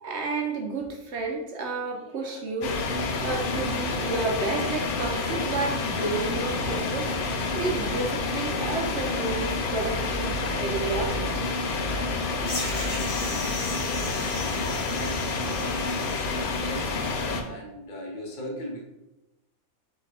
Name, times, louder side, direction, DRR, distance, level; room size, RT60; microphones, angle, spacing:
voice 1, 0.0-2.7 3.2-7.1 7.5-11.5, right 3 dB, 60° right, 2 dB, 0.7 m, -31 dB
sound 1, 2.6-17.4, left 3 dB, 85° left, 0.4 m, -28 dB
sound 2, 12.5-17.2, left 2 dB, 60° left, 1.3 m, -37 dB
voice 2, 14.9-15.3 16.5-18.8, equal, 40° left, -1 dB, 0.9 m, -38 dB
4.0 x 3.7 x 3.3 m, 0.98 s
omnidirectional pair, 1.5 m